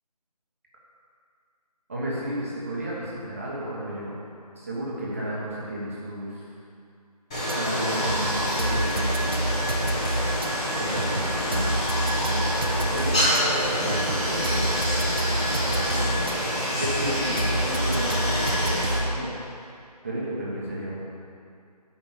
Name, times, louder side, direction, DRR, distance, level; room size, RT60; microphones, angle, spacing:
voice 1, 1.9-4.1 4.5-6.5 7.5-9.6 10.7-12.4 12.9-16.4 16.8-19.3 19.6-21.1, right 1 dB, 20° right, -6 dB, 1.2 m, -33 dB
Stream, 7.3-19.0, equal, 10° left, 1.3 m, -27 dB
sound 1, 7.5-7.6 8.0-10.5 11.0-13.4 13.9-16.4 16.8-19.2, right 1 dB, 35° right, 0.4 m, -28 dB
9.6 x 5.9 x 7.3 m, 2.4 s
figure-of-eight pair, 170°, 21 cm